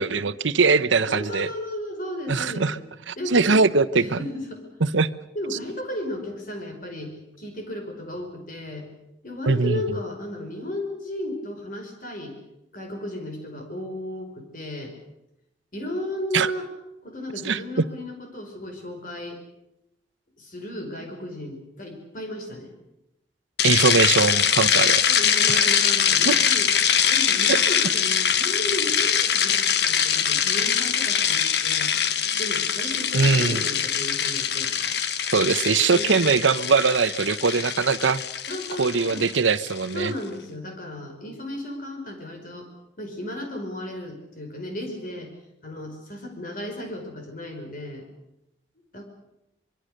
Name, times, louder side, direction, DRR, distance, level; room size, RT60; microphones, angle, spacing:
voice 1, 0.0-1.5 2.3-2.8 3.1-4.2 4.8-5.1 9.5-9.8 16.3-16.5 17.4-17.6 23.6-25.0 25.5-25.7 26.2-26.5 27.5-27.6 33.1-33.6 35.3-38.2 38.8-40.1, right 4 dB, 85° right, 15 dB, 0.9 m, -21 dB
voice 2, 1.1-2.8 3.2-3.6 3.9-4.6 5.3-8.9 9.2-12.4 12.7-14.9 15.7-16.7 17.0-19.4 20.4-22.7 25.1-26.7 27.1-31.9 32.4-34.7 35.9-36.1 38.5-39.3 39.9-42.7 43.0-45.3 45.6-48.1 48.9-49.0, left 1 dB, 45° left, 3 dB, 5.1 m, -34 dB
sound 1, 23.6-39.9, left 8 dB, 60° left, 1.2 m, -23 dB
24.5 x 22.5 x 6.6 m, 0.87 s
head